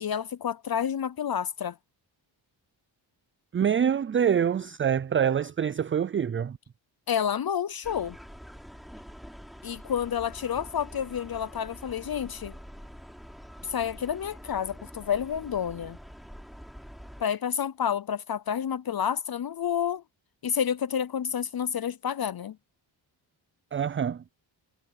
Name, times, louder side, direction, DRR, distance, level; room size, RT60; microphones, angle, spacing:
voice 1, 0.0-1.8 7.1-8.2 9.6-12.5 13.6-16.0 17.2-20.0 20.4-22.6, left 8 dB, 50° left, 0.7 m, -29 dB
voice 2, 3.5-6.6 23.7-24.2, right 8 dB, 30° right, 0.3 m, -25 dB
sound 1, 7.8-17.2, equal, ahead, 4.1 m, -46 dB
cardioid pair, 80°, 48 cm